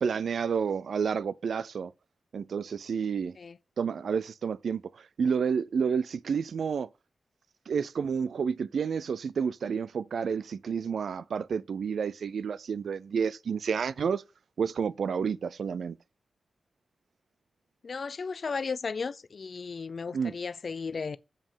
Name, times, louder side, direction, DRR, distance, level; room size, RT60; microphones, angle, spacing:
voice 1, 0.0-1.9 2.3-3.4 3.8-6.9 7.7-14.2 14.6-16.0 20.1-20.3, right 6 dB, 75° right, 0.3 m, -30 dB
voice 2, 17.8-21.2, left 5 dB, 50° left, 0.4 m, -35 dB
7.4 x 5.0 x 5.5 m
wide cardioid pair, 175°, 0 cm